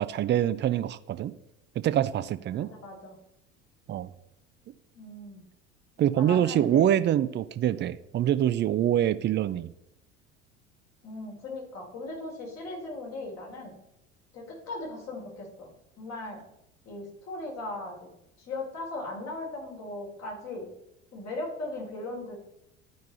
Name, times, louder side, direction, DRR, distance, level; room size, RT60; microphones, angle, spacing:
voice 1, 0.0-1.3 1.8-2.7 3.9-4.1 6.0-9.7, right 11 dB, 30° right, 0.5 m, -25 dB
voice 2, 2.6-3.2 5.0-5.4 6.2-6.9 11.0-13.8 14.3-15.7 16.0-16.4 16.9-18.1 18.4-20.7 21.1-22.4, left 2 dB, 45° left, 3.9 m, -38 dB
12.5 x 5.3 x 4.0 m
hypercardioid pair, 70°, 36 cm